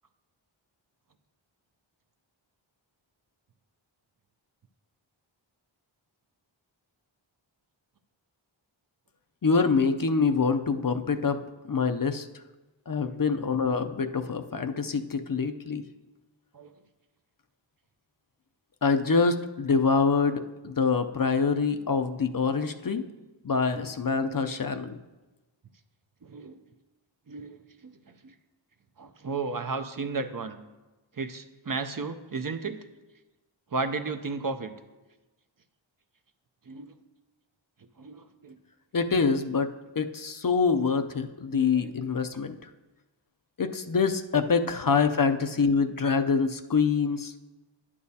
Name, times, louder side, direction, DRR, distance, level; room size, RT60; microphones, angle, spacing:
voice 1, 9.4-11.4 11.7-12.3 12.9-15.8 18.8-23.0 23.4-25.0 38.9-42.7 43.6-47.3, left 5 dB, 45° left, 7 dB, 0.5 m, -25 dB
voice 2, 26.2-26.6 27.3-28.3 29.0-30.6 31.2-32.8 33.7-34.7 36.7-36.9 38.0-38.6 41.5-41.9, right 4 dB, 45° right, 9 dB, 0.6 m, -34 dB
10.5 x 8.5 x 2.8 m, 1.1 s
wide cardioid pair, 45°, 48 cm